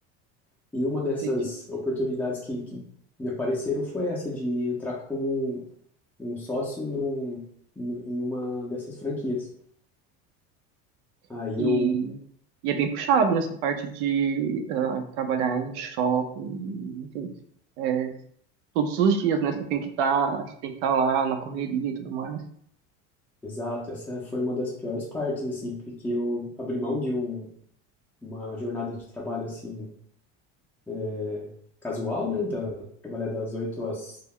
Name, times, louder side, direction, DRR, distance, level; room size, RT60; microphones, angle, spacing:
voice 1, 0.7-2.8 3.2-5.6 6.2-7.4 7.8-9.5 11.3-11.9 23.4-27.5 28.2-29.9 30.9-31.5 31.8-34.1, left 2 dB, 5° left, -7 dB, 0.4 m, -30 dB
voice 2, 11.6-12.2 12.6-17.3 17.8-18.1 18.7-22.4, right 6 dB, 85° right, 6 dB, 0.6 m, -26 dB
2.2 x 2.1 x 3.5 m, 0.66 s
cardioid pair, 140°, 33 cm